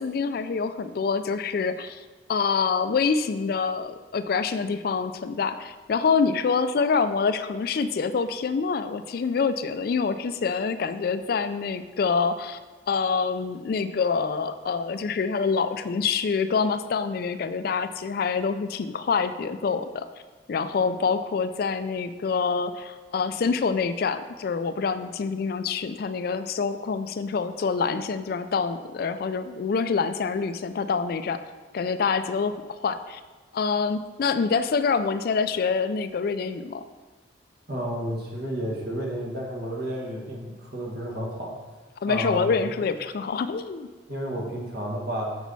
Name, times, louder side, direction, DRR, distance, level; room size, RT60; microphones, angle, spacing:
voice 1, 0.0-2.0 2.3-12.6 12.9-20.1 20.5-31.4 31.7-33.2 33.5-36.8 42.0-43.9, left 5 dB, 50° left, 11 dB, 0.3 m, -26 dB
voice 2, 37.7-41.6 42.1-42.7 44.1-45.4, equal, 55° right, -2 dB, 1.6 m, -31 dB
7.0 x 6.2 x 4.1 m, 1.3 s
head